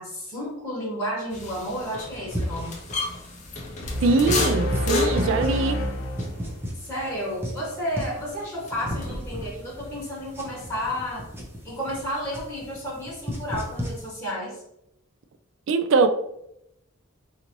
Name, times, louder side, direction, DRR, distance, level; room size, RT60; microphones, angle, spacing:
voice 1, 0.0-2.8 6.7-11.2 11.6-14.6, equal, 10° left, 1.2 m, -32 dB
sound 1, 1.3-9.4 9.7-10.9, left 3 dB, 35° left, 0.6 m, -33 dB
sound 2, 2.3-14.1, equal, 10° right, 0.7 m, -36 dB
sound 3, 3.8-7.2, equal, 80° left, 0.7 m, -29 dB
voice 2, 4.0-5.8 15.7-16.1, right 3 dB, 65° right, 0.3 m, -22 dB
3.9 x 2.9 x 3.0 m
head